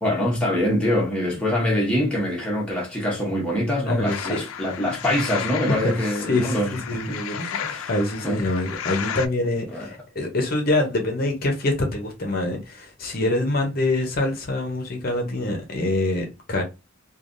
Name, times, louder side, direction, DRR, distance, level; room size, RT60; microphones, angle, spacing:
voice 1, 0.0-7.2 7.6-7.9 8.2-8.4 9.7-9.9, left 1 dB, 5° left, 0.8 m, -24 dB
voice 2, 3.9-4.4 6.3-7.6 7.9-16.6, left 2 dB, 45° left, 0.7 m, -25 dB
sound 1, 4.1-9.3, left 8 dB, 90° left, 0.4 m, -33 dB
3.1 x 2.3 x 2.5 m
head